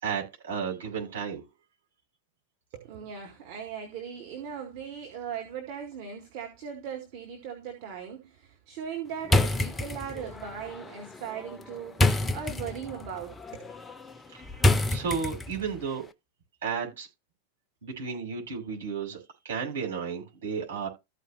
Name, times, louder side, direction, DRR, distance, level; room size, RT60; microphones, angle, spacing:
voice 1, 0.0-1.4 14.3-16.1 16.6-17.1 17.8-19.2 19.4-20.9, right 6 dB, 65° right, 6.0 m, -33 dB
voice 2, 2.7-13.7, right 7 dB, 45° right, 2.0 m, -39 dB
sound 1, 9.2-15.7, left 1 dB, 15° left, 0.7 m, -28 dB
14.5 x 5.1 x 3.1 m
figure-of-eight pair, 90°, 0 cm